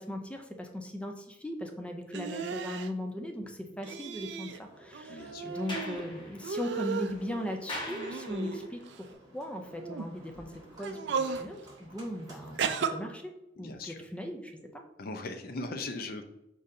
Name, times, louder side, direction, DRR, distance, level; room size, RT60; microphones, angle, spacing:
voice 1, 0.0-9.1 9.3-10.5 10.8-14.8, left 1 dB, 5° left, 3 dB, 0.5 m, -38 dB
sound 1, 2.1-2.9 3.8-4.6 4.9-6.0 6.4-7.2 7.9-9.0 9.7-10.1 10.8-11.4 12.6-12.9, right 6 dB, 70° right, 0.4 m, -35 dB
Livestock farm animals working animals, 4.6-12.6, right 1 dB, 20° right, 1.6 m, -54 dB
voice 2, 5.1-5.5 13.6-14.0 15.0-16.2, left 2 dB, 55° left, 6 dB, 0.6 m, -39 dB
Sliding door, 5.5-8.8, left 1 dB, 25° left, 0.9 m, -43 dB
4.9 x 4.1 x 2.6 m, 0.92 s
head